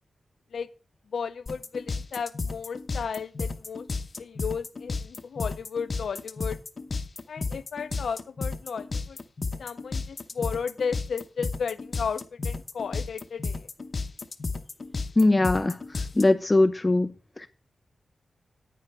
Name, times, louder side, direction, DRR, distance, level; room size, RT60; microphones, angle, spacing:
voice 1, 1.1-3.9 4.2-6.6 7.3-9.2 9.6-13.7, left 6 dB, 85° left, 0.6 m, -34 dB
sound 1, 1.5-16.2, left 4 dB, 45° left, 0.8 m, -32 dB
voice 2, 15.2-15.8 16.2-17.1, left 2 dB, 20° left, 0.5 m, -20 dB
9.6 x 9.4 x 3.4 m
wide cardioid pair, 100°, 0 cm